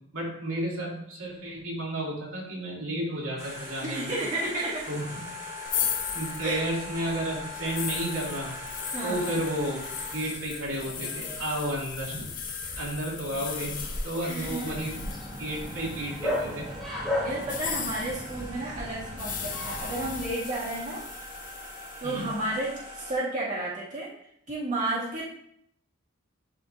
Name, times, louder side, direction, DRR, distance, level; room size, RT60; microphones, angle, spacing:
voice 1, 0.1-4.1 4.9-5.2 6.1-8.5 9.0-9.8 10.1-12.3 12.8-13.8 14.0-15.0 15.4-16.7 22.0-22.3, right 1 dB, 75° right, -4 dB, 2.5 m, -32 dB
sound 1, 3.4-11.5 12.7-12.8 13.0-23.1, left 1 dB, 15° right, 2.5 m, -42 dB
voice 2, 3.8-4.9 6.4-6.6 8.9-9.3 14.2-14.8 17.2-21.0 22.0-24.1 24.5-25.3, right 2 dB, 35° right, -7 dB, 2.0 m, -32 dB
sound 2, 5.6-16.6 17.4-22.2, left 6 dB, 40° left, 1.1 m, -37 dB
Bark, 14.4-20.2, left 1 dB, ahead, 1.7 m, -35 dB
11.5 x 5.0 x 2.8 m, 0.71 s
head